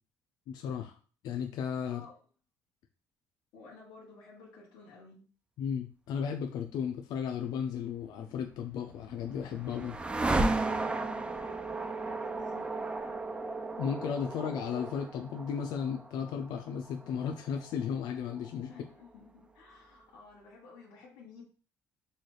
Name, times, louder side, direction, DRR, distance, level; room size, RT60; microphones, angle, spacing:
voice 1, 0.5-1.0 1.2-2.0 5.6-9.9 10.8-10.9 13.8-18.7, left 7 dB, 70° left, 5 dB, 0.4 m, -35 dB
voice 2, 1.8-2.2 3.5-5.2 10.8-13.2 18.7-21.4, left 4 dB, 85° left, -5 dB, 1.1 m, -53 dB
sound 1, 8.7-18.8, right 2 dB, 15° right, 0.3 m, -35 dB
4.1 x 2.4 x 3.1 m, 0.38 s
cardioid pair, 115°, 7 cm